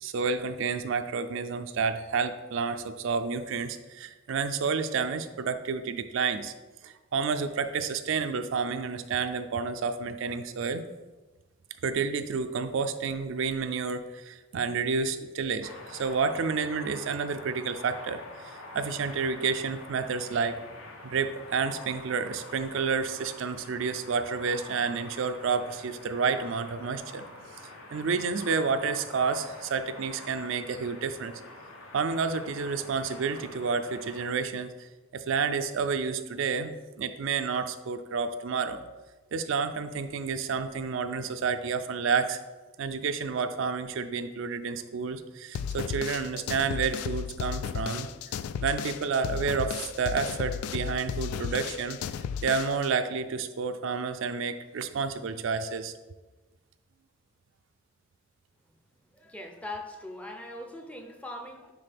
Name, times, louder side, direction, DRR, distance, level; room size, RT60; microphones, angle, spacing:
voice 1, 0.0-6.5 6.8-10.8 11.8-20.6 21.0-27.2 27.9-31.3 31.9-38.8 39.3-42.4 42.8-48.4 48.6-52.0 52.4-55.9, right 5 dB, 60° right, 9 dB, 0.4 m, -30 dB
sound 1, 15.6-34.3, left 2 dB, 65° left, 1.0 m, -46 dB
sound 2, 45.5-52.9, left 7 dB, 85° left, 0.3 m, -34 dB
voice 2, 59.1-61.7, left 1 dB, 5° left, 4 dB, 0.5 m, -41 dB
9.8 x 4.1 x 3.4 m, 1.2 s
head